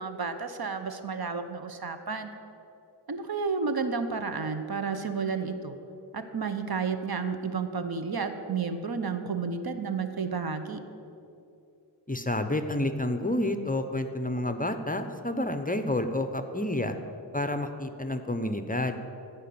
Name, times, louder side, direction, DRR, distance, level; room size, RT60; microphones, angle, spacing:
voice 1, 0.0-2.3 3.1-5.8 6.1-10.8, right 5 dB, 55° right, 8 dB, 0.9 m, -31 dB
voice 2, 12.1-17.0 17.3-19.0, left 1 dB, 20° left, 8 dB, 0.7 m, -29 dB
14.5 x 5.2 x 8.5 m, 2.7 s
wide cardioid pair, 70°, 43 cm